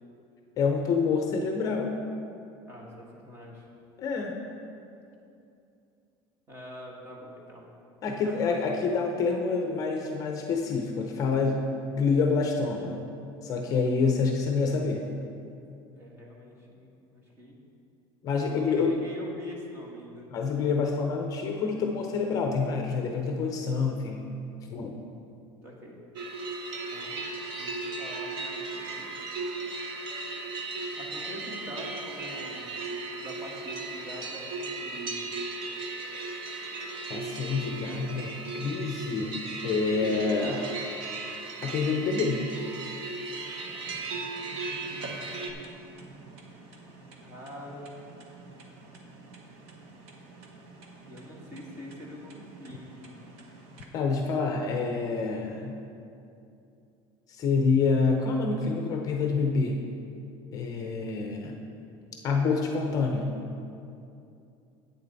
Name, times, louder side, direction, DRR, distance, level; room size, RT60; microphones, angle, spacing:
voice 1, 0.6-2.0 4.0-4.3 8.0-13.0 13.4-15.1 18.2-19.0 20.3-24.3 24.7-25.0 37.1-40.7 41.6-42.4 53.9-55.7 57.3-59.8 60.5-61.6 62.2-63.3, left 4 dB, 30° left, 2 dB, 0.6 m, -27 dB
voice 2, 2.6-3.7 6.5-7.7 8.2-8.3 14.1-14.8 15.9-17.6 18.3-20.3 25.6-26.0 26.9-27.3 27.5-29.2 30.9-35.3 44.7-46.4 47.2-48.1 51.0-53.1, left 1 dB, 20° right, -2 dB, 1.3 m, -45 dB
sound 1, 26.1-45.5, right 3 dB, 45° right, 0.9 m, -36 dB
sound 2, 43.6-53.8, right 3 dB, 60° right, 1.2 m, -49 dB
10.5 x 8.6 x 4.0 m, 2.6 s
cardioid pair, 175°, 12 cm